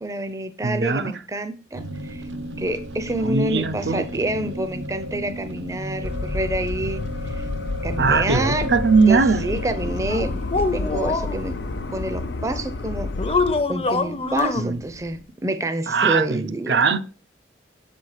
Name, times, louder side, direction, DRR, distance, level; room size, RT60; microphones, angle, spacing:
voice 1, 0.0-2.3 2.6-7.5 7.8-8.7 9.1-11.6 11.9-13.1 13.7-16.9, right 1 dB, 15° right, 0.5 m, -28 dB
voice 2, 0.6-1.1 3.2-4.1 8.0-9.5 14.6-14.8 15.9-17.0, right 4 dB, 70° right, 0.5 m, -20 dB
sound 1, 1.7-15.2, equal, 90° right, 0.9 m, -35 dB
sound 2, 6.0-13.6, left 3 dB, 70° left, 0.6 m, -30 dB
sound 3, 10.1-11.4 13.2-14.6, left 3 dB, 30° left, 0.6 m, -24 dB
6.9 x 4.3 x 4.8 m
head